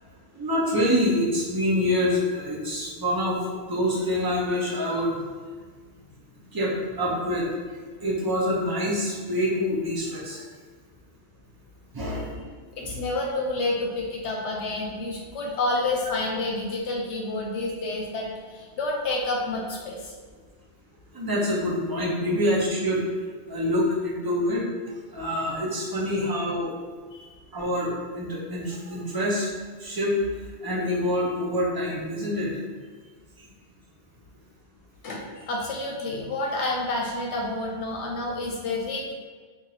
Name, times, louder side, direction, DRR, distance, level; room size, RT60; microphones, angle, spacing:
voice 1, 0.3-5.1 6.5-7.5 8.0-10.4 11.9-12.4 12.8-13.0 21.1-23.0 23.5-24.6 25.1-26.7 27.5-29.5 29.8-30.2 30.6-32.5, left 1 dB, 25° right, -5 dB, 0.6 m, -26 dB
voice 2, 12.7-20.1 27.1-27.3 35.0-39.1, left 2 dB, 80° left, -1 dB, 0.9 m, -29 dB
2.9 x 2.5 x 4.0 m, 1.5 s
omnidirectional pair, 1.2 m